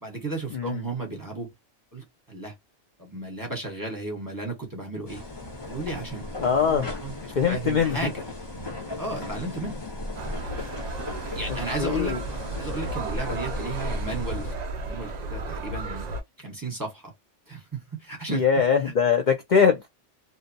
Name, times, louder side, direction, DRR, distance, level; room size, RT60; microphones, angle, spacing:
voice 1, 0.0-1.5 1.9-2.5 3.0-5.2 5.6-8.2 9.0-9.8 11.3-12.2 12.6-14.5 14.8-17.1 17.5-18.5 18.8-18.9, right 2 dB, 20° right, 0.9 m, -34 dB
voice 2, 0.5-0.8 6.4-6.9 7.4-8.0 11.8-12.2 18.3-19.9, left 6 dB, 55° left, 0.5 m, -22 dB
sound 1, 5.1-14.6, left 1 dB, 25° left, 0.8 m, -36 dB
sound 2, 10.2-16.2, right 2 dB, 55° right, 0.5 m, -34 dB
2.6 x 2.1 x 2.6 m
omnidirectional pair, 1.2 m